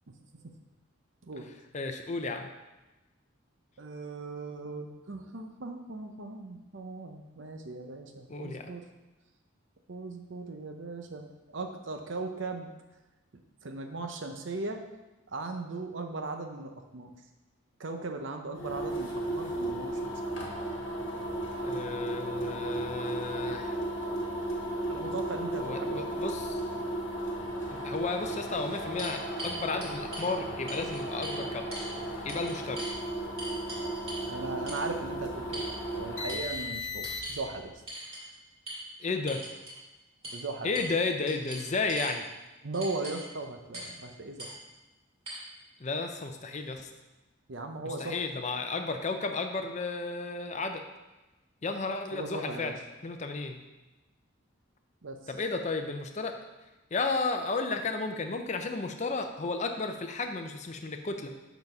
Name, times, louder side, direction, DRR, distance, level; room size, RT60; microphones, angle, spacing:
voice 1, 1.7-2.5 8.3-8.7 21.6-23.8 25.6-26.6 27.7-31.7 32.2-32.9 39.0-39.4 40.6-42.2 45.8-46.9 47.8-50.8 51.6-52.8 53.0-53.6 55.3-56.3 56.9-61.3, left 3 dB, 35° left, 5 dB, 0.5 m, -33 dB
voice 2, 3.8-8.8 9.9-12.7 13.6-14.8 15.3-17.1 17.8-20.0 24.9-26.1 34.3-35.6 35.9-37.7 40.3-40.8 42.6-44.6 47.5-48.2 52.1-52.7 55.0-55.2, right 3 dB, 60° right, 5 dB, 0.7 m, -38 dB
sound 1, 18.5-37.5, right 1 dB, 60° left, 1.3 m, -35 dB
sound 2, 28.5-30.3 30.7-31.4 31.7-31.9 32.3-32.9 33.4-34.3 34.7-34.9 35.5-36.0 36.3-36.6 37.0-37.4 37.9-38.2 38.7-38.8 39.3-39.8 40.2-40.4 40.7-41.0 41.3-42.1 42.7-43.3 43.7-44.0 44.4-44.5 45.3-45.4, right 1 dB, 30° right, 2.0 m, -41 dB
6.9 x 4.0 x 5.4 m, 1.1 s
head